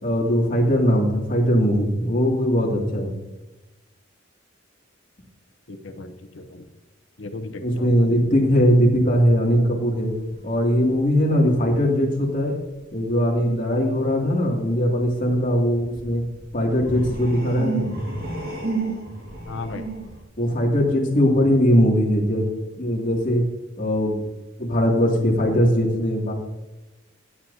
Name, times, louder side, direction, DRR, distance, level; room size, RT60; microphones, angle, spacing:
voice 1, 0.0-3.2 7.6-10.1 10.4-12.5 12.9-16.2 16.5-17.9 20.4-22.5 22.8-23.4 23.8-24.3 24.6-26.3, equal, 40° left, -2 dB, 2.5 m, -20 dB
voice 2, 5.7-6.6 7.2-8.1 19.5-19.8, left 3 dB, 75° left, 8 dB, 0.8 m, -36 dB
sound 1, 10.0-10.8 11.2-11.3 15.2-20.2, right 3 dB, 55° right, 1.9 m, -32 dB
14.0 x 9.5 x 2.8 m, 1.0 s
head